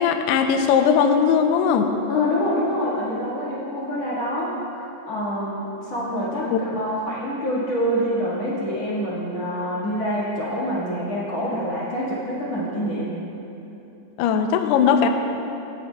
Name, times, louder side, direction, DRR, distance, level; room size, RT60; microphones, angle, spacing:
voice 1, 0.0-1.9 6.5-6.6 14.2-15.1, left 7 dB, 90° left, 5 dB, 2.3 m, -19 dB
voice 2, 2.1-13.1, equal, 50° left, -8 dB, 2.0 m, -26 dB
18.5 x 10.5 x 2.3 m, 2.9 s
omnidirectional pair, 5.4 m